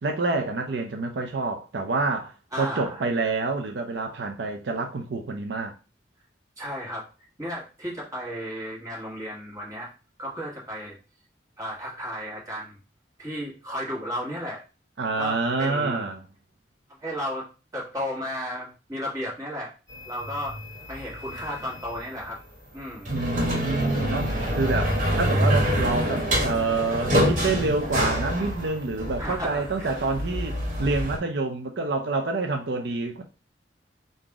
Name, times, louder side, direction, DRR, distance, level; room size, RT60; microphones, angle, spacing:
voice 1, 0.0-5.7 15.0-16.2 23.1-33.2, right 3 dB, 70° right, 0.5 m, -27 dB
voice 2, 2.5-3.0 6.6-7.1 7.4-9.9 10.2-11.0 11.6-12.8 13.2-14.6 15.1-16.0 17.0-17.5 17.7-19.7 20.0-20.6 20.9-22.4 22.7-23.1 29.2-29.9, equal, 20° right, 1.7 m, -33 dB
sound 1, 19.9-22.0 22.9-31.2, equal, 50° right, 1.6 m, -26 dB
3.8 x 2.6 x 4.7 m
head